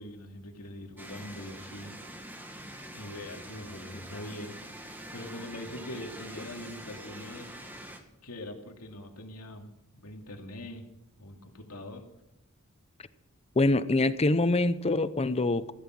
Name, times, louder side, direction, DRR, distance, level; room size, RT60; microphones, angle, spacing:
voice 1, 0.0-2.0 2.9-7.8 8.2-9.7 9.9-10.8 11.2-12.0, left 1 dB, 85° left, 3 dB, 2.6 m, -43 dB
sound 1, 1.0-8.0, right 1 dB, 10° right, 1.7 m, -45 dB
voice 2, 13.6-15.7, left 2 dB, 30° left, 14 dB, 0.6 m, -25 dB
15.0 x 12.5 x 6.1 m, 0.86 s
head